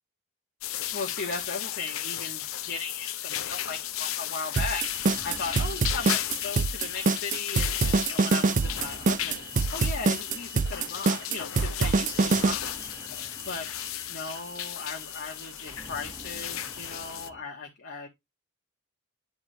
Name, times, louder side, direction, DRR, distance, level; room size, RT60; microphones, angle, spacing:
sound 1, 0.6-17.3, left 12 dB, 85° left, 0.7 m, -35 dB
voice 1, 0.9-4.9 5.2-12.8 13.5-13.7 14.1-18.1, left 4 dB, 60° left, 1.5 m, -37 dB
sound 2, 4.6-12.5, right 4 dB, 40° right, 0.4 m, -24 dB
sound 3, 4.8-17.4, right 4 dB, 15° right, 1.1 m, -46 dB
9.9 x 3.6 x 4.4 m
head